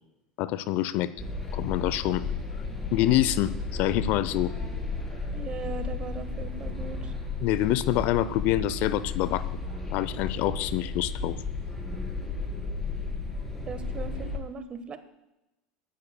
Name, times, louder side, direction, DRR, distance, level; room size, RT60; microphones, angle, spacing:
voice 1, 0.4-1.1 1.5-2.2 2.9-4.5 7.4-9.4 9.9-11.4, left 14 dB, 55° left, 15 dB, 0.6 m, -26 dB
sound 1, 1.2-14.4, left 3 dB, 10° left, 4.1 m, -33 dB
voice 2, 5.3-7.1 13.7-15.0, right 5 dB, 30° right, 10 dB, 1.3 m, -38 dB
23.5 x 11.0 x 2.3 m, 0.96 s
hypercardioid pair, 85°, 4 cm